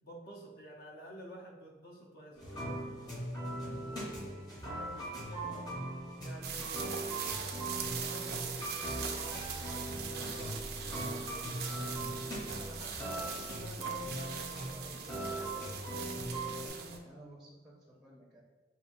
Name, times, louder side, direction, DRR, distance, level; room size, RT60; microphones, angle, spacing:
voice 1, 0.0-3.4 3.8-11.8 12.4-15.7, right 1 dB, 55° left, -1 dB, 0.8 m, -51 dB
sound 1, 2.3-16.7, right 1 dB, 20° left, 0.9 m, -40 dB
sound 2, 6.4-17.0, right 6 dB, 55° right, 0.4 m, -41 dB
voice 2, 16.6-18.4, right 1 dB, 5° right, -4 dB, 0.6 m, -54 dB
5.7 x 2.5 x 2.6 m, 1.3 s
head